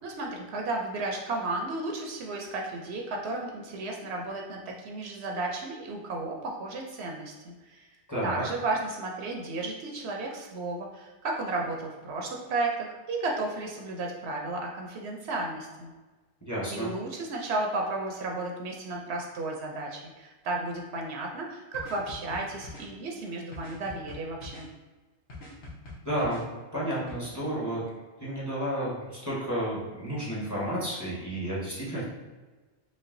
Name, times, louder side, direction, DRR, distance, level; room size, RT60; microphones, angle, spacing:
voice 1, 0.0-7.9 8.2-15.9 16.7-24.7, right 2 dB, 75° right, 0 dB, 0.8 m, -33 dB
voice 2, 8.1-8.4 16.5-16.9 26.0-26.5 26.7-27.8 28.2-32.0, right 1 dB, 15° left, -7 dB, 1.0 m, -31 dB
sound 1, 21.7-22.9 23.5-24.7 25.3-26.4 27.1-27.2, left 2 dB, 80° left, 1.3 m, -43 dB
5.1 x 2.2 x 2.6 m, 1.2 s
omnidirectional pair, 1.2 m